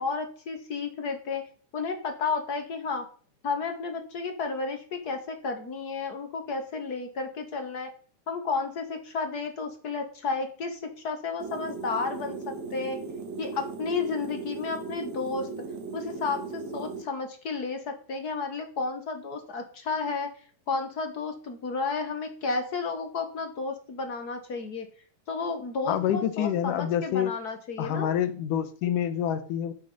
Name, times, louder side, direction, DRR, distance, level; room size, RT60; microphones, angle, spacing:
voice 1, 0.0-1.4 1.7-3.0 3.4-7.9 8.3-13.0 13.4-15.5 15.9-20.3 20.7-24.9 25.3-28.1, left 4 dB, 50° left, 5 dB, 1.2 m, -32 dB
sound 1, 11.4-17.0, right 4 dB, 65° right, 2.8 m, -37 dB
voice 2, 25.9-27.4 27.8-29.7, left 10 dB, 85° left, 11 dB, 2.5 m, -27 dB
12.5 x 6.3 x 5.4 m, 0.44 s
omnidirectional pair, 3.6 m